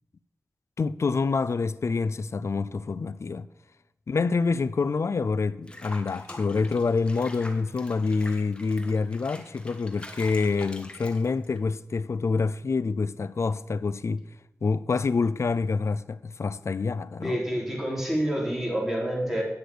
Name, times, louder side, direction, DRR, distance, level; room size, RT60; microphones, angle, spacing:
voice 1, 0.8-3.5 4.1-14.3 14.6-17.4, left 4 dB, 65° left, 0.4 m, -27 dB
Water / Bathtub (filling or washing), 5.7-11.6, left 1 dB, 20° left, 1.6 m, -45 dB
voice 2, 17.2-19.4, equal, 5° right, 3.6 m, -28 dB
9.4 x 6.7 x 8.1 m
wide cardioid pair, 70°, 5 cm